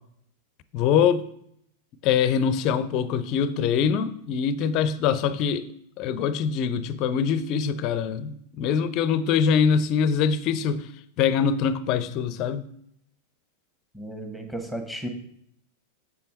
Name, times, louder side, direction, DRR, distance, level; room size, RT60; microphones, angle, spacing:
voice 1, 0.7-1.2 2.0-5.7 6.0-10.9 11.2-12.6, left 7 dB, 40° left, 0.6 m, -23 dB
voice 2, 13.9-15.1, right 1 dB, 5° right, 1.5 m, -34 dB
7.4 x 7.0 x 4.1 m
figure-of-eight pair, 90°, 0 cm